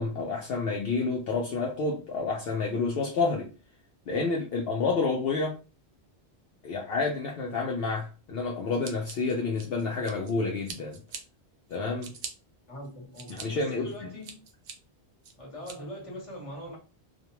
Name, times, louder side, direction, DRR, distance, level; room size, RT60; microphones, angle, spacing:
voice 1, 0.0-3.5 4.1-5.6 6.6-11.0 11.7-12.1 13.3-14.1, left 4 dB, 65° left, 0.8 m, -29 dB
Scissors, 8.8-10.3 10.6-11.2 11.7-12.3 12.8-13.4 13.9-14.7 15.2-15.7, right 5 dB, 55° right, 0.6 m, -42 dB
voice 2, 12.7-14.4 15.4-16.8, equal, 30° left, 1.0 m, -41 dB
2.4 x 2.2 x 2.9 m
omnidirectional pair, 1.1 m